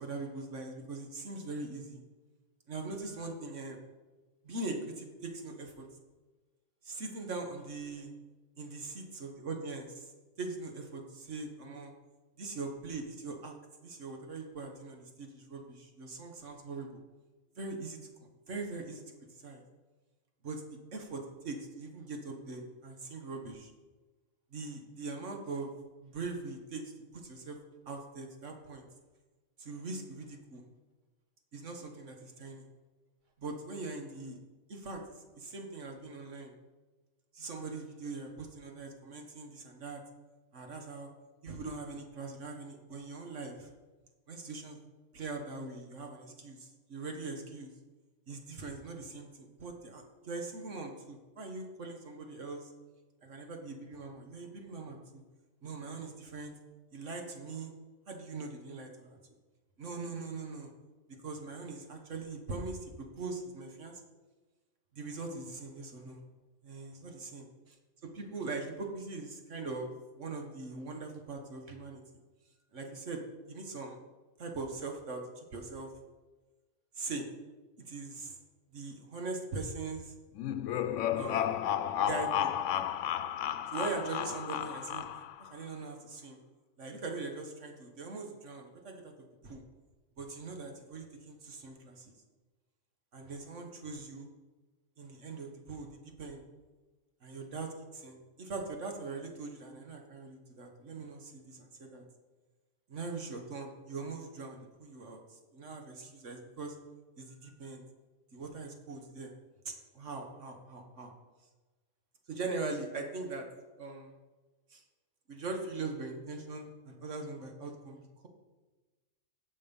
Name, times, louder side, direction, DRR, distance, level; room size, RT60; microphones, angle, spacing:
voice 1, 0.0-2.0 2.7-3.8 4.4-5.9 6.8-8.1 8.6-10.1 10.4-11.9 12.4-13.6 13.8-17.0 17.6-18.0 18.5-19.0 19.4-19.6 20.4-20.6 20.9-23.7 24.5-25.7 26.0-27.6 27.9-28.9 29.6-30.6 31.5-32.7 33.4-34.4 34.7-36.5 37.3-40.0 40.5-41.1 41.4-43.7 44.3-44.8 45.1-47.7 48.3-52.6 53.2-55.2 55.6-56.5 56.9-57.7 58.1-59.2 59.8-60.7 61.2-64.0 64.9-66.2 66.6-67.8 68.0-72.0 72.7-73.2 73.5-74.0 74.4-75.9 77.0-77.3 77.9-78.4 78.7-80.1 81.2-81.6 82.1-82.5 83.7-86.4 86.8-89.1 89.4-89.6 90.2-92.1 93.1-94.3 95.0-96.4 97.2-102.0 102.9-106.8 107.2-107.8 108.3-109.3 109.7-111.1 112.3-113.5 113.8-114.1 114.7-114.8 115.3-118.3, right 3 dB, 85° right, 3 dB, 1.9 m, -41 dB
sound 1, 80.4-85.5, left 10 dB, 90° left, 0.9 m, -33 dB
16.5 x 6.5 x 5.5 m, 1.2 s
omnidirectional pair, 1.2 m